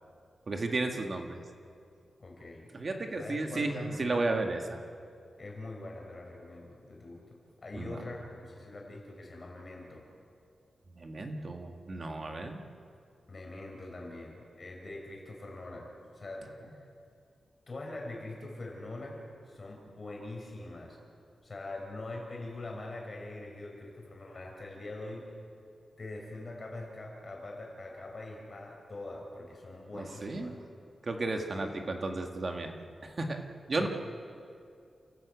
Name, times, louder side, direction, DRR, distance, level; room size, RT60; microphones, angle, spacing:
voice 1, 0.5-1.4 2.7-4.8 7.8-8.0 11.0-12.6 29.9-30.5 31.0-33.9, right 2 dB, 40° right, 4 dB, 1.9 m, -34 dB
voice 2, 2.2-2.7 3.2-4.3 5.4-10.0 13.3-16.9 17.7-21.0 21.4-25.3 26.0-30.6 31.5-31.9 33.8-33.9, left 2 dB, 35° left, 0 dB, 5.3 m, -43 dB
30.0 x 13.5 x 8.4 m, 2.4 s
wide cardioid pair, 155°, 0 cm